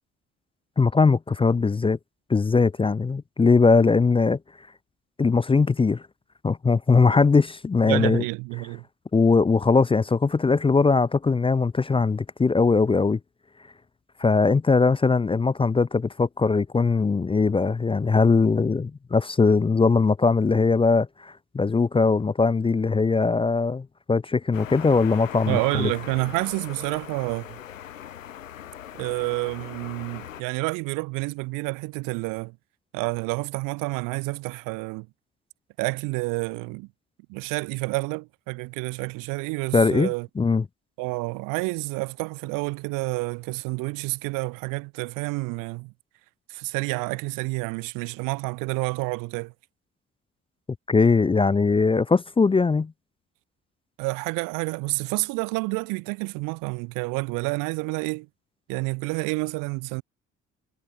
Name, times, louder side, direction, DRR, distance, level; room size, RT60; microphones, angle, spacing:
voice 1, 0.8-2.0 2.3-4.4 5.2-6.0 6.4-8.2 9.1-13.2 14.2-25.9 39.7-40.1 40.4-40.6 50.9-52.9, left 4 dB, 15° left, 0.5 m, -20 dB
voice 2, 7.9-8.8 25.4-27.6 29.0-32.6 32.9-35.1 35.8-36.9 37.3-40.3 41.0-45.9 46.5-49.5 54.0-58.3 58.7-60.0, right 28 dB, 55° right, 0.6 m, -29 dB
sound 1, 24.5-30.4, left 10 dB, 80° left, 0.9 m, -40 dB
figure-of-eight pair, 45°, 38 cm